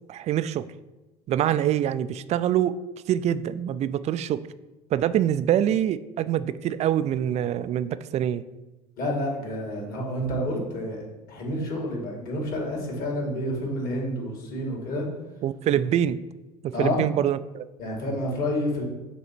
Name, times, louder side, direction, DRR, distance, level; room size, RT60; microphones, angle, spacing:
voice 1, 0.1-0.6 1.3-2.8 3.1-4.4 4.9-8.4 15.4-16.2 16.6-17.7, right 10 dB, 35° right, 14 dB, 0.3 m, -25 dB
voice 2, 9.0-11.0 11.3-15.1 15.7-15.8 16.7-17.0 17.8-18.8, left 1 dB, 50° left, -1 dB, 2.2 m, -29 dB
7.0 x 3.2 x 4.5 m, 1.1 s
figure-of-eight pair, 65°, 20 cm